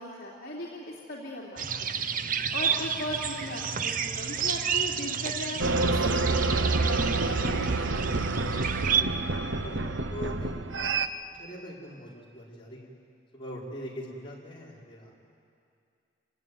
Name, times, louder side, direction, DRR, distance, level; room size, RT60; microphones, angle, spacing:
voice 1, 0.0-7.8, left 1 dB, 55° left, -4 dB, 3.2 m, -38 dB
sound 1, 1.6-9.0, right 7 dB, 45° right, 0.9 m, -30 dB
sound 2, 5.6-11.1, right 3 dB, 85° right, 1.0 m, -28 dB
voice 2, 8.8-10.6 11.4-12.9 13.3-15.1, equal, 30° left, -5 dB, 5.0 m, -42 dB
28.5 x 18.5 x 9.4 m, 2.4 s
head